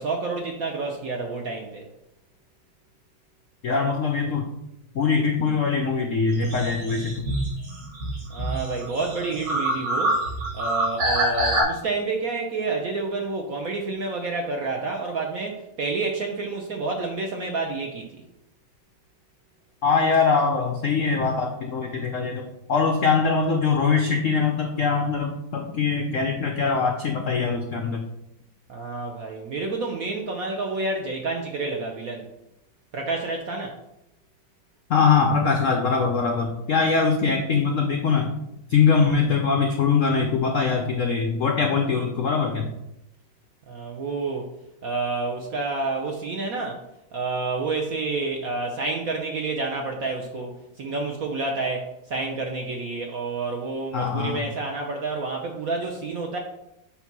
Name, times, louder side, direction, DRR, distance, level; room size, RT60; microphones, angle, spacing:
voice 1, 0.0-1.8 8.3-10.2 10.5-18.2 28.7-32.3 32.9-33.8 43.7-44.5 44.8-46.8 47.1-56.4, right 3 dB, 65° right, 2 dB, 0.9 m, -29 dB
voice 2, 3.6-4.5 4.9-7.2 19.8-28.0 34.9-38.3 38.7-42.7 53.9-54.5, left 5 dB, 80° left, 3 dB, 0.7 m, -22 dB
sound 1, 6.3-11.6, right 1 dB, 45° right, 2.3 m, -26 dB
8.0 x 2.9 x 6.0 m, 0.88 s
omnidirectional pair, 2.2 m